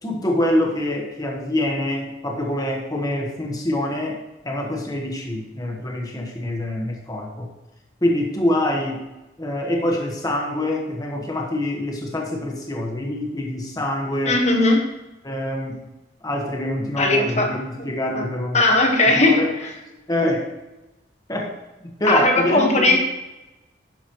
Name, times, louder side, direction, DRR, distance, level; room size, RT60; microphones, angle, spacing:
voice 1, 0.0-7.5 8.0-9.0 9.4-14.4 15.2-15.8 16.2-18.6 19.1-19.5 20.1-20.5 21.3-21.5 21.8-23.0, left 1 dB, 20° left, 0 dB, 1.4 m, -25 dB
voice 2, 14.2-14.8 17.0-17.5 17.8-17.9 18.1-18.2 18.5-19.7 22.1-23.0, left 2 dB, 40° left, 2 dB, 1.4 m, -18 dB
11.5 x 9.4 x 3.1 m, 1.0 s
head